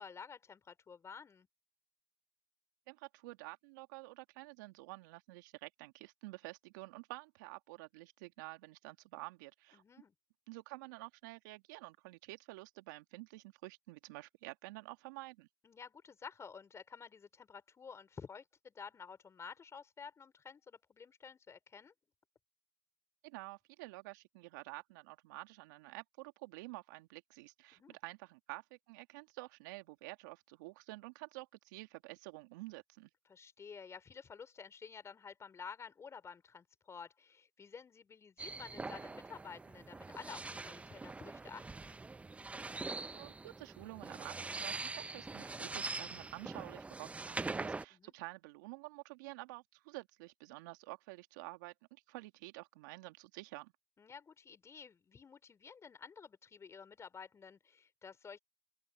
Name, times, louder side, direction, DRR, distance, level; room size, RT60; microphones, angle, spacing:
voice 1, 0.0-1.5 9.7-10.1 15.6-21.9 27.7-28.0 33.3-42.0 47.9-48.1 54.0-58.4, left 6 dB, 25° left, 4.9 m, -52 dB
voice 2, 2.9-9.8 10.5-15.5 23.2-33.1 43.1-53.7, right 23 dB, 70° right, 2.1 m, -50 dB
sound 1, 38.4-47.8, right 3 dB, 10° right, 0.7 m, -43 dB
open air
hypercardioid pair, 85°, 10 cm